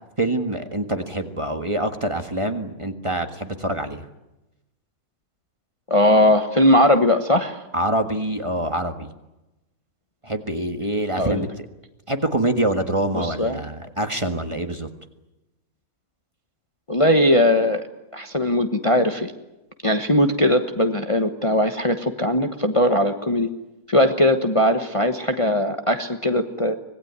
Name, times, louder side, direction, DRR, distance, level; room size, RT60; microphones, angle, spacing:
voice 1, 0.2-4.0 7.7-9.1 10.2-11.7 12.1-14.9, right 1 dB, 20° right, 6 dB, 1.6 m, -25 dB
voice 2, 5.9-7.6 11.2-11.5 13.1-13.6 16.9-17.8 18.1-19.3 19.8-23.5 23.9-26.7, left 1 dB, 25° left, 6 dB, 1.2 m, -19 dB
25.5 x 19.0 x 9.6 m, 0.98 s
omnidirectional pair, 1.5 m